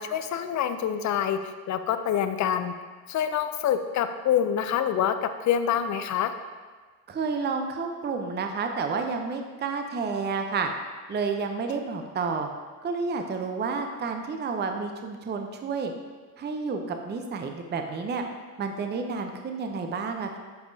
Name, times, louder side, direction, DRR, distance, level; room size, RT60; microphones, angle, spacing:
voice 1, 0.0-1.4 1.7-2.7 3.1-6.3, left 9 dB, 40° left, 9 dB, 0.5 m, -26 dB
voice 2, 7.1-10.7 11.1-12.5 12.8-15.9 16.4-18.2 18.6-20.4, right 4 dB, 20° right, 5 dB, 0.6 m, -30 dB
7.8 x 5.2 x 2.7 m, 1.4 s
supercardioid pair, 75°, 49 cm